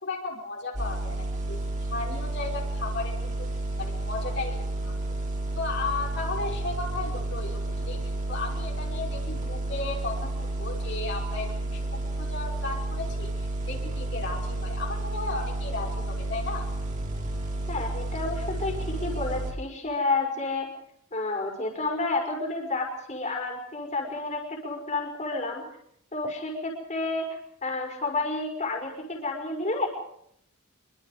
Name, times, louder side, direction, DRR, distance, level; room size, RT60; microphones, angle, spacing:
voice 1, 0.0-3.5 3.8-5.0 5.6-16.6, left 3 dB, 55° left, -1 dB, 5.3 m, -35 dB
sound 1, 0.7-19.5, right 1 dB, 35° right, 5.0 m, -31 dB
voice 2, 17.7-20.7 21.1-25.7 26.1-27.3 27.6-29.9, left 3 dB, 35° left, 2 dB, 5.5 m, -30 dB
26.5 x 24.0 x 5.0 m, 0.73 s
head